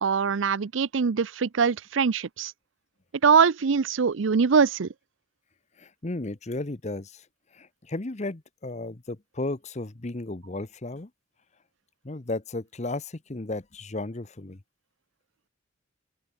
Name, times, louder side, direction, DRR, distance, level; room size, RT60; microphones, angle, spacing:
voice 1, 0.0-2.5 3.2-4.9, right 6 dB, 70° right, 0.5 m, -22 dB
voice 2, 5.8-7.2 7.5-11.1 12.0-14.6, left 2 dB, 35° left, 1.0 m, -34 dB
open air
head